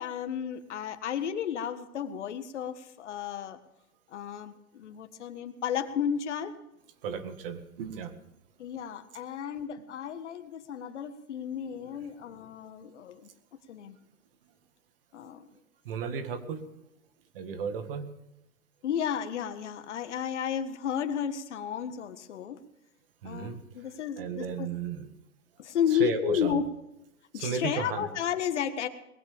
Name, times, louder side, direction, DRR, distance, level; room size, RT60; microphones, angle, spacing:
voice 1, 0.0-3.6 4.1-6.5 8.6-13.3 13.7-14.0 15.1-15.5 18.8-22.6 23.2-24.7 25.6-26.6 27.3-28.9, left 8 dB, 55° left, 10 dB, 1.6 m, -33 dB
voice 2, 7.0-8.1 15.9-16.7 17.3-18.1 23.2-23.6 24.2-25.1 25.8-26.6 27.3-28.1, right 6 dB, 40° right, 9 dB, 1.9 m, -34 dB
20.5 x 15.5 x 3.5 m, 0.88 s
hypercardioid pair, 145°, 42 cm